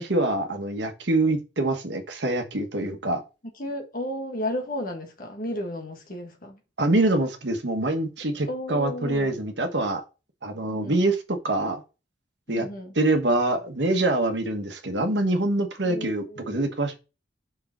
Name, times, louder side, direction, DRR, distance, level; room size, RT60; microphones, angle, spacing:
voice 1, 0.0-3.2 6.8-10.0 10.4-11.8 12.5-12.7 12.9-17.0, right 2 dB, 70° right, 1.3 m, -25 dB
voice 2, 3.6-6.6 8.5-9.3 10.6-11.0 12.5-12.9 15.8-16.6, left 1 dB, 50° left, 1.6 m, -33 dB
5.3 x 4.8 x 4.3 m
head